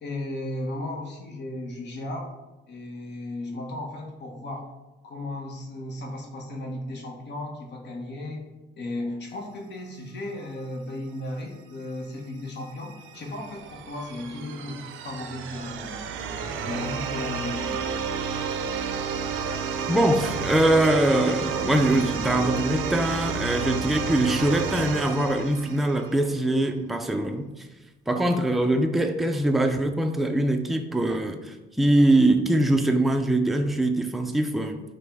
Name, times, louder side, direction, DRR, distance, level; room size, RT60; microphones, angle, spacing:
voice 1, 0.0-2.3 2.7-4.7 5.0-8.4 8.8-16.0 16.6-17.8, left 1 dB, 60° left, 1 dB, 0.8 m, -35 dB
sound 1, 12.4-26.3, right 6 dB, 80° right, 0.4 m, -31 dB
voice 2, 19.9-27.5 28.1-34.8, right 1 dB, ahead, 5 dB, 0.3 m, -23 dB
4.8 x 2.1 x 3.5 m, 1.1 s
cardioid pair, 90°, 20 cm